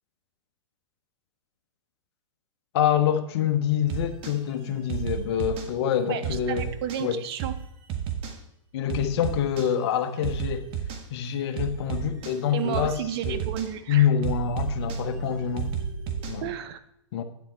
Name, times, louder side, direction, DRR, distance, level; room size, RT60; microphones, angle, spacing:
voice 1, 2.7-6.7 7.0-7.2 8.7-10.7 11.1-13.0 13.2-13.4 13.9-15.7 16.3-16.5 17.1-17.2, left 9 dB, 50° left, 1.1 m, -26 dB
sound 1, 3.9-4.4 4.9-5.7 6.2-7.0 7.4-7.6 7.9-8.4 8.9-9.7 10.2-11.0 11.6-12.4 12.7-12.9 13.2-13.7 14.2-16.4, right 7 dB, 35° right, 1.5 m, -32 dB
voice 2, 6.1-7.6 12.5-14.1 16.4-16.8, right 10 dB, 50° right, 0.8 m, -32 dB
9.5 x 7.5 x 4.4 m
hypercardioid pair, 125°, 17 cm